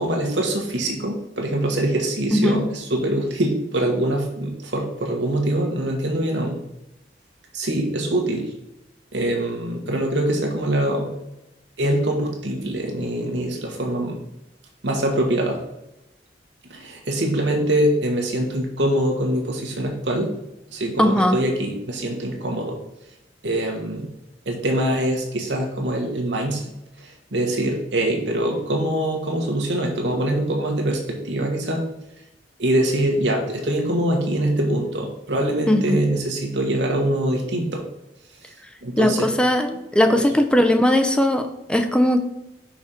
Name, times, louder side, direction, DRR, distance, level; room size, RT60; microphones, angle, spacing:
voice 1, 0.0-6.6 7.5-8.5 9.1-11.1 11.8-14.2 14.8-15.6 16.7-20.3 20.7-22.8 23.4-24.1 24.4-26.6 27.0-31.8 32.6-37.8 38.8-39.3 40.2-40.3, right 1 dB, 85° right, 1 dB, 1.5 m, -23 dB
voice 2, 21.0-21.4 35.7-36.0 39.0-42.2, left 1 dB, 5° left, 6 dB, 0.5 m, -19 dB
5.7 x 5.1 x 4.4 m, 0.92 s
head